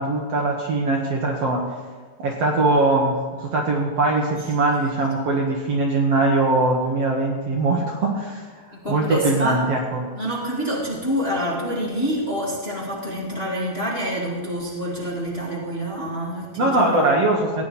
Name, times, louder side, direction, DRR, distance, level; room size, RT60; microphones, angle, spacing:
voice 1, 0.0-1.6 2.2-8.6 8.9-10.1 16.6-17.6, right 2 dB, 60° right, 0 dB, 1.9 m, -21 dB
voice 2, 8.7-9.6 10.1-17.2, equal, 25° left, -5 dB, 1.8 m, -27 dB
16.0 x 9.6 x 4.2 m, 1.5 s
omnidirectional pair, 3.8 m